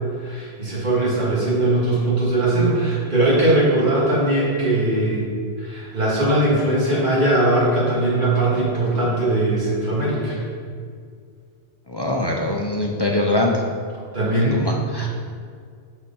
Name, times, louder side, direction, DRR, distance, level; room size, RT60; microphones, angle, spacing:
voice 1, 0.2-5.3 5.6-10.4 14.1-14.7 15.0-15.1, right 2 dB, 45° right, -7 dB, 2.2 m, -20 dB
voice 2, 11.9-13.6 14.4-15.1, left 1 dB, 45° left, -1 dB, 0.3 m, -23 dB
6.2 x 4.5 x 5.4 m, 2.1 s
omnidirectional pair, 1.2 m